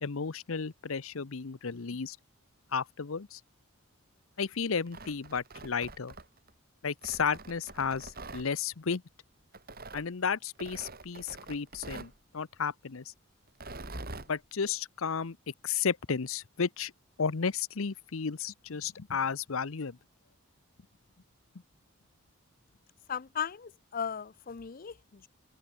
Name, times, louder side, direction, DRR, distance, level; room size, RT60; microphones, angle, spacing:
voice 1, 0.0-2.2 2.7-3.4 4.4-6.1 6.8-9.0 9.9-13.1 14.3-15.4 15.6-16.9 17.2-20.0, left 6 dB, 70° left, 0.8 m, -33 dB
Tearing, 4.7-6.5 7.0-8.5 9.5-10.1 10.6-12.2 13.5-14.3, right 2 dB, 45° right, 4.5 m, -45 dB
voice 2, 23.1-25.3, left 7 dB, 40° left, 0.5 m, -37 dB
open air
head